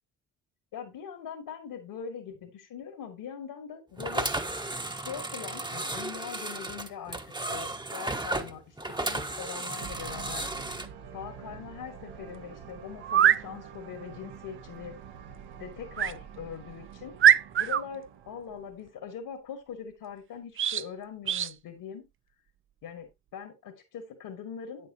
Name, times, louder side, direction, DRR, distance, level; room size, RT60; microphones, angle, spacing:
voice 1, 0.7-4.3 4.9-7.2 7.5-10.5 11.1-15.0 15.6-17.2 17.6-22.1 22.8-24.9, left 7 dB, 65° left, 3 dB, 2.7 m, -42 dB
sound 1, 4.0-10.9, right 2 dB, 10° right, 1.3 m, -34 dB
sound 2, 8.9-19.1, right 7 dB, 65° right, 1.6 m, -47 dB
sound 3, 12.1-12.2 13.0-13.4 16.0-16.2 16.7-16.8 17.2-17.8 20.6-20.9 21.3-21.5, right 9 dB, 30° right, 0.5 m, -22 dB
9.6 x 8.5 x 2.9 m, 0.21 s
hypercardioid pair, 50°, 42 cm